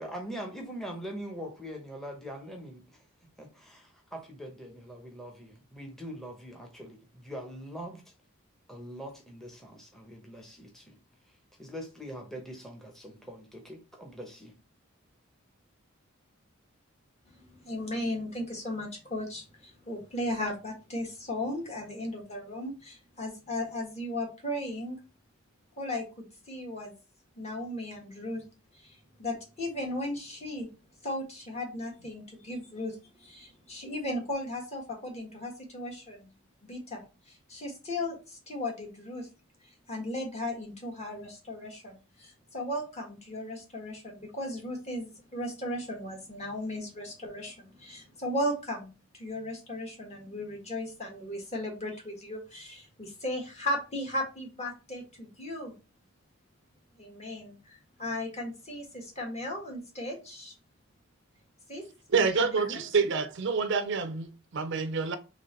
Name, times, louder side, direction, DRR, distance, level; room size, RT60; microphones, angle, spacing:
voice 1, 0.0-3.0 3.4-8.0 8.7-11.0 11.6-14.5, equal, ahead, 0.9 m, -42 dB
voice 2, 17.3-25.0 25.8-26.9 27.4-28.4 28.7-30.7 31.0-36.3 36.6-39.3 39.9-55.7 57.0-60.5 61.7-61.8 62.2-62.8, left 1 dB, 30° left, 1.6 m, -36 dB
voice 3, 62.1-65.2, right 5 dB, 55° right, 0.5 m, -27 dB
3.8 x 3.3 x 4.2 m
head